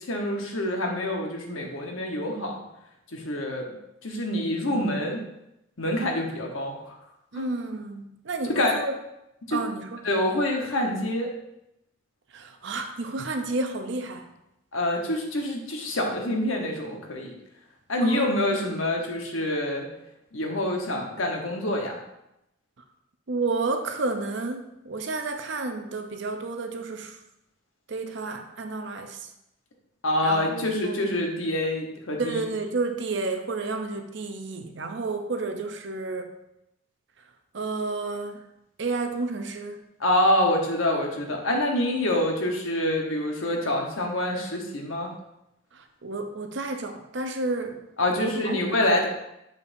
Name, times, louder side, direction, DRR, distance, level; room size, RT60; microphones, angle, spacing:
voice 1, 0.1-2.6 3.1-3.7 4.0-5.2 5.8-6.9 7.3-7.5 8.5-8.8 9.5-9.6 10.0-11.3 14.7-17.3 17.9-19.9 20.3-22.0 30.0-32.4 40.0-45.1 48.0-49.1, left 1 dB, 80° left, 1 dB, 1.1 m, -26 dB
voice 2, 7.3-8.9 9.5-10.0 12.3-14.3 18.0-18.2 23.3-27.2 27.9-29.2 30.2-31.0 32.2-36.3 37.5-38.4 38.8-39.8 45.7-47.9 48.2-48.6, right 3 dB, 60° right, 6 dB, 0.6 m, -31 dB
6.6 x 5.5 x 2.6 m, 0.86 s
head